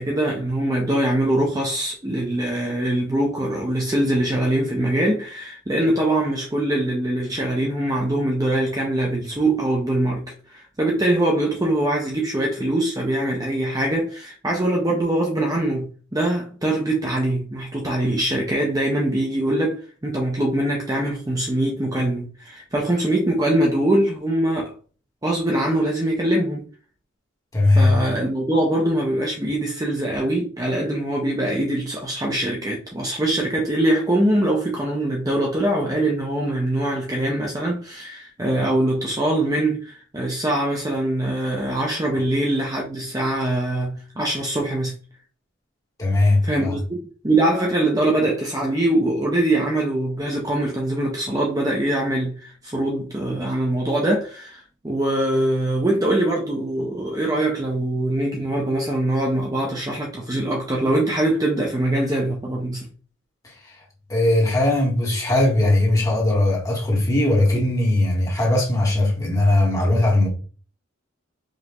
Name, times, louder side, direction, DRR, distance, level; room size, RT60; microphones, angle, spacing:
voice 1, 0.0-24.7 25.2-26.7 27.7-44.9 46.4-47.0 47.2-62.9, right 1 dB, 15° right, 0.6 m, -23 dB
voice 2, 27.5-28.0 46.0-46.8 63.4-63.8 64.1-70.3, left 2 dB, 15° left, 1.4 m, -19 dB
5.1 x 2.6 x 2.9 m
head